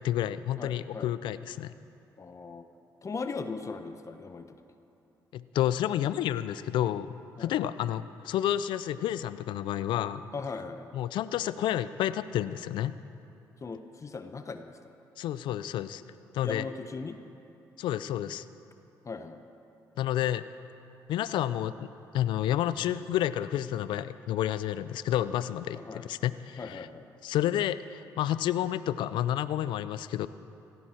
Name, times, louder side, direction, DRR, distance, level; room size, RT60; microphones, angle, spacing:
voice 1, 0.0-1.7 5.3-7.1 7.4-10.2 10.9-12.9 15.2-16.0 16.3-16.7 17.8-18.4 20.0-20.4 21.1-21.9 22.1-26.9 27.2-30.3, left 12 dB, 75° left, 15 dB, 0.4 m, -30 dB
voice 2, 0.6-1.1 2.2-2.7 3.0-4.6 7.4-7.5 10.3-10.9 13.6-14.7 16.4-17.2 19.0-19.4 25.7-26.1 26.6-27.1, left 4 dB, 40° left, 8 dB, 0.9 m, -38 dB
17.0 x 15.0 x 4.4 m, 2.8 s
supercardioid pair, 60°, 8 cm